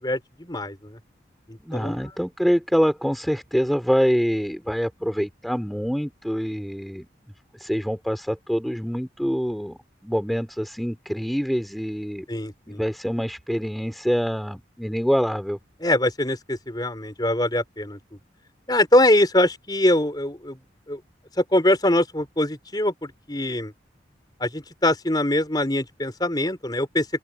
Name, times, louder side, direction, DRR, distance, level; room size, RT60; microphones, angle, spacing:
voice 1, 0.0-1.0 1.5-2.0 12.3-12.8 15.8-18.0 18.7-20.6 20.9-21.0 21.4-23.7 24.4-27.1, left 1 dB, 25° left, 4.4 m, -23 dB
voice 2, 1.6-7.1 7.6-12.2 12.7-15.6, equal, ahead, 2.9 m, -25 dB
open air
head